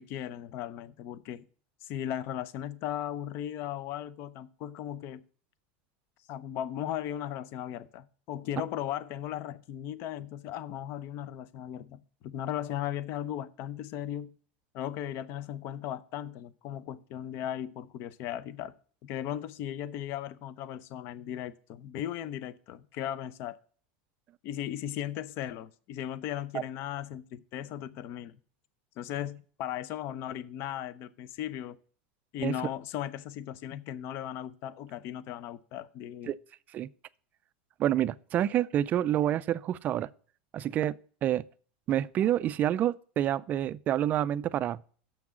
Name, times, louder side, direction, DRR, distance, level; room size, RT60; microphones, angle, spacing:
voice 1, 0.0-1.4 1.8-5.2 6.3-14.3 14.7-18.7 19.0-23.6 24.4-28.4 29.0-31.8 32.3-36.3, left 11 dB, 50° left, 0.6 m, -37 dB
voice 2, 37.8-40.1 40.5-41.4 41.9-44.8, right 11 dB, 30° right, 0.4 m, -28 dB
7.1 x 6.0 x 7.4 m
supercardioid pair, 140°, 5 cm